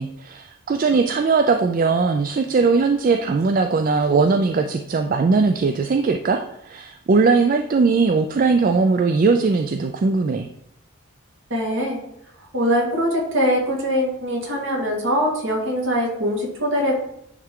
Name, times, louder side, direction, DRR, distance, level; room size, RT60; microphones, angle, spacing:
voice 1, 0.0-10.5, right 4 dB, 40° right, 6 dB, 0.3 m, -19 dB
voice 2, 11.5-12.0 12.5-17.0, equal, 60° right, 0 dB, 1.8 m, -22 dB
9.4 x 3.4 x 3.7 m, 0.76 s
head